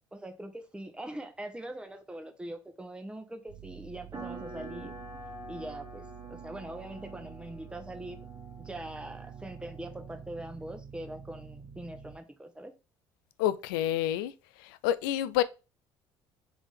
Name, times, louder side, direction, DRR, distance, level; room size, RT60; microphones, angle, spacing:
voice 1, 0.1-4.9 5.5-8.2 8.6-12.7, right 1 dB, 10° right, 1.0 m, -42 dB
sound 1, 3.5-12.2, right 9 dB, 55° right, 1.2 m, -48 dB
sound 2, 4.1-10.3, right 2 dB, 30° right, 1.3 m, -47 dB
voice 2, 13.4-14.3 14.6-15.4, left 12 dB, 85° left, 0.4 m, -28 dB
3.5 x 3.5 x 4.1 m
hypercardioid pair, 65°, 11 cm